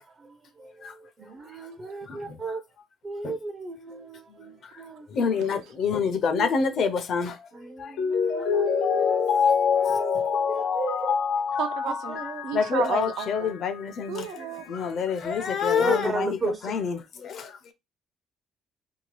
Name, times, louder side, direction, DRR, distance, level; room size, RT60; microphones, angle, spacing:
voice 1, 0.0-2.6 3.0-5.4 7.5-9.5 9.7-11.2 12.1-12.5 14.4-15.0 15.8-16.8, right 3 dB, 30° right, 0.5 m, -35 dB
voice 2, 5.1-7.4 7.8-7.9 8.5-8.6 9.7-9.8 12.5-14.2 14.7-16.3 16.6-17.7, left 6 dB, 55° left, 0.6 m, -27 dB
Mallet percussion, 8.0-13.5 13.8-13.9, left 6 dB, 90° left, 0.9 m, -25 dB
voice 3, 11.6-13.5 14.1-14.7, right 8 dB, 80° right, 0.5 m, -32 dB
2.7 x 2.2 x 3.1 m
cardioid pair, 120°, 0 cm